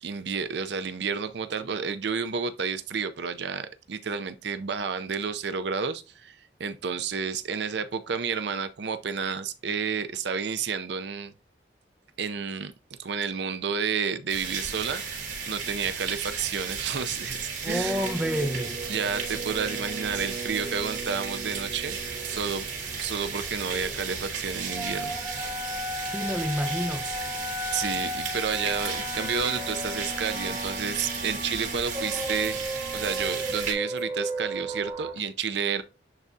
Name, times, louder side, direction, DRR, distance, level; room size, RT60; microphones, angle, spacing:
voice 1, 0.0-11.3 12.2-12.7 13.0-15.2 15.5-18.1 18.9-22.0 22.2-25.2 27.7-32.6 32.9-35.8, right 6 dB, 70° right, 0.5 m, -31 dB
sound 1, 14.3-33.7, right 5 dB, 90° right, 4.0 m, -35 dB
voice 2, 17.6-18.8 26.1-27.1, equal, 5° right, 0.6 m, -29 dB
sound 2, 17.7-35.1, equal, 25° right, 2.1 m, -36 dB
Alarm, 25.3-25.4 26.0-26.4 27.0-27.5 28.0-28.4 29.0-29.4 29.8-30.6 31.0-31.5 31.8-32.5 33.0-33.4 33.9-34.0 34.8-35.2, left 1 dB, 90° left, 2.6 m, -53 dB
10.5 x 3.6 x 2.7 m
head